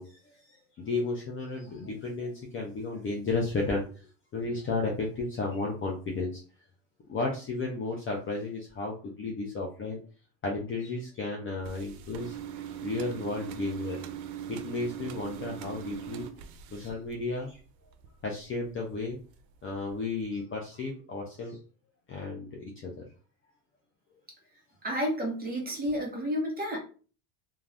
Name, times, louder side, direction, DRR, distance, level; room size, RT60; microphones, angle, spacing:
voice 1, 0.0-6.4 7.1-10.0 10.4-12.4 12.6-14.0 14.5-16.2 16.7-17.6 18.2-19.2 19.6-21.6 22.1-23.0, left 3 dB, 25° left, -1 dB, 0.5 m, -33 dB
sound 1, 11.6-17.6 17.9-18.7 19.1-19.3 19.9-20.0 20.2-20.3, right 9 dB, 90° right, 0.6 m, -41 dB
voice 2, 24.8-26.8, equal, 20° right, 0 dB, 1.0 m, -31 dB
2.6 x 2.2 x 3.3 m, 0.38 s
supercardioid pair, 125°, 49 cm